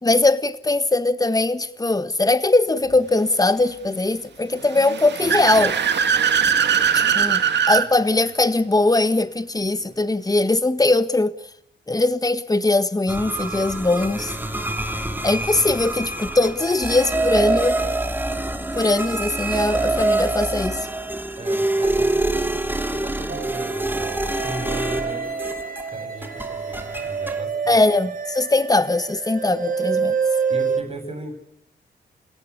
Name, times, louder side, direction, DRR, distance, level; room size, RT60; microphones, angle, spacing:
voice 1, 0.0-5.8 6.9-11.3 11.9-14.3 15.2-17.8 18.7-20.8 27.7-30.2, left 2 dB, 20° left, 1.5 m, -20 dB
Car / Accelerating revving vroom, 4.6-7.9, right 7 dB, 75° right, 2.0 m, -20 dB
sound 1, 13.1-26.0 26.2-27.4, right 2 dB, 10° right, 2.9 m, -25 dB
voice 2, 21.4-25.5 25.9-27.8 30.5-31.4, right 1 dB, 35° right, 7.9 m, -36 dB
sound 2, 23.3-30.8, right 6 dB, 50° right, 4.3 m, -28 dB
29.0 x 17.0 x 8.5 m
cardioid pair, 75°, 18 cm